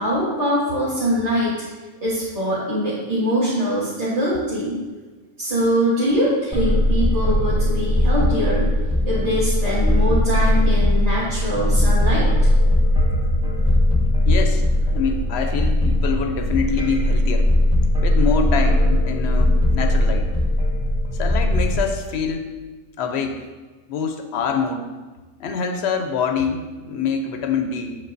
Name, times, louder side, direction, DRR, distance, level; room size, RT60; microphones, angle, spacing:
voice 1, 0.0-1.5 2.0-4.8 5.4-8.7 9.1-12.2, equal, 30° right, -10 dB, 1.4 m, -23 dB
sound 1, 6.5-21.8, left 1 dB, 5° right, 0.7 m, -19 dB
voice 2, 14.3-14.7 14.9-17.5 18.0-20.3 21.1-22.6 23.0-23.5 23.9-24.8 25.4-28.0, left 5 dB, 65° left, 6 dB, 0.7 m, -25 dB
7.3 x 5.2 x 2.6 m, 1.3 s
omnidirectional pair, 1.3 m